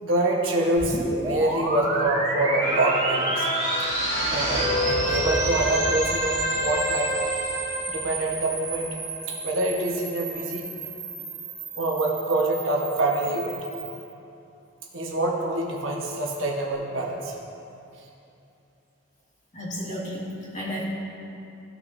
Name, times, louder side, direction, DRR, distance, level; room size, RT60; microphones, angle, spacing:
voice 1, 0.0-3.5 4.2-7.1 7.9-8.9 9.3-10.6 11.7-13.6 14.9-17.4 19.9-20.0, right 2 dB, 80° right, -1 dB, 1.2 m, -26 dB
sound 1, 0.8-14.1, right 3 dB, 65° right, 1.7 m, -32 dB
sound 2, 2.6-9.2 9.7-9.8, equal, 65° left, 1.7 m, -28 dB
voice 2, 19.5-20.8, equal, 40° left, -6 dB, 2.0 m, -33 dB
14.5 x 6.0 x 2.7 m, 2.8 s
head